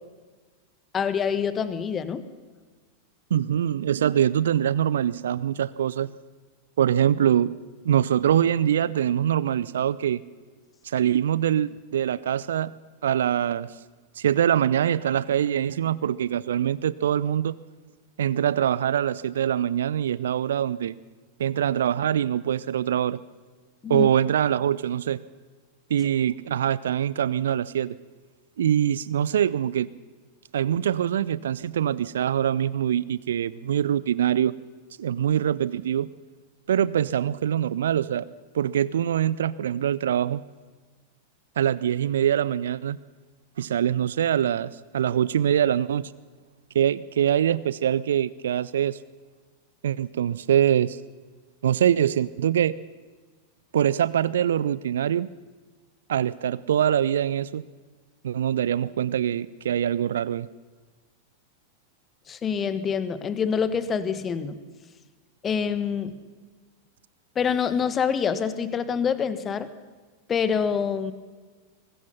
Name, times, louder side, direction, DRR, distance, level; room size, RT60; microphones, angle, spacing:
voice 1, 0.9-2.3 23.8-24.1 62.3-64.6 65.4-66.1 67.3-69.7 70.3-71.1, left 7 dB, 25° left, 13 dB, 1.5 m, -26 dB
voice 2, 3.3-6.1 6.8-7.6 7.8-10.2 10.8-12.7 13.0-13.7 14.2-17.6 18.2-20.9 21.4-23.2 23.9-25.2 25.9-27.9 28.6-29.9 30.5-34.5 35.0-36.1 36.7-38.2 38.5-40.4 41.6-43.0 43.6-46.1 46.7-49.0 49.8-51.0 51.6-52.7 53.7-55.3 56.1-57.6 58.2-60.5, right 10 dB, 65° right, 19 dB, 0.6 m, -24 dB
23.5 x 20.5 x 5.7 m, 1.4 s
figure-of-eight pair, 90°, 0 cm